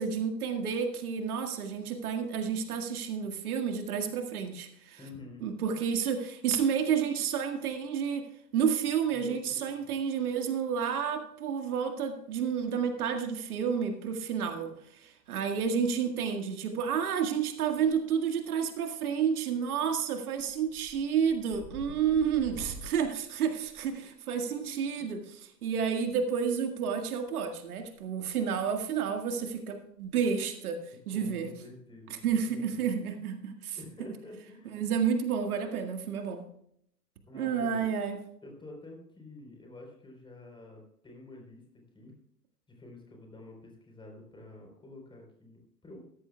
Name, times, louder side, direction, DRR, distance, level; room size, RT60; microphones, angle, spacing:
voice 1, 0.0-5.0 5.4-8.3 8.5-30.8 31.1-31.5 32.2-33.8 34.7-36.5 37.3-38.2, right 7 dB, 60° right, 5 dB, 1.9 m, -30 dB
voice 2, 5.0-5.5 9.1-9.9 22.0-22.2 24.5-24.7 31.1-33.0 33.8-34.8 37.3-37.9 38.4-41.6 41.9-42.1 42.7-46.0, left 2 dB, 10° left, 1 dB, 4.0 m, -49 dB
sound 1, 17.7-18.3 18.6-19.1 19.5-19.7 20.1-24.5 25.8-26.0 27.2-28.0 28.3-28.5 29.1-29.2 29.4-29.5 29.9-30.1 30.3-30.4 32.0-32.3, right 2 dB, 25° right, 4.1 m, -49 dB
15.5 x 14.0 x 2.3 m, 0.70 s
hypercardioid pair, 115°, 49 cm